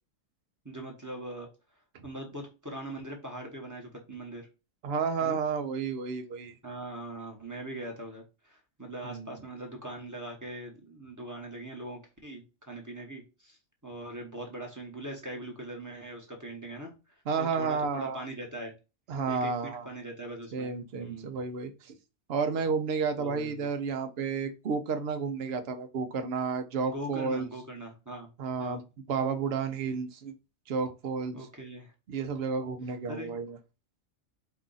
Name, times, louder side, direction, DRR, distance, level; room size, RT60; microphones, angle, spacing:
voice 1, 0.6-4.5 5.2-5.4 6.6-18.7 19.3-20.7 21.0-21.4 23.2-23.6 26.9-28.3 28.6-28.8 31.3-31.9 33.1-33.3, right 1 dB, 15° right, 0 dB, 1.0 m, -41 dB
voice 2, 4.8-6.5 9.0-9.3 17.3-18.2 19.1-19.8 20.5-22.0 22.3-27.5 28.4-28.8 29.1-30.3 30.7-31.4 32.1-33.6, right 5 dB, 60° right, 7 dB, 0.9 m, -31 dB
4.7 x 2.4 x 3.9 m, 0.29 s
omnidirectional pair, 1.3 m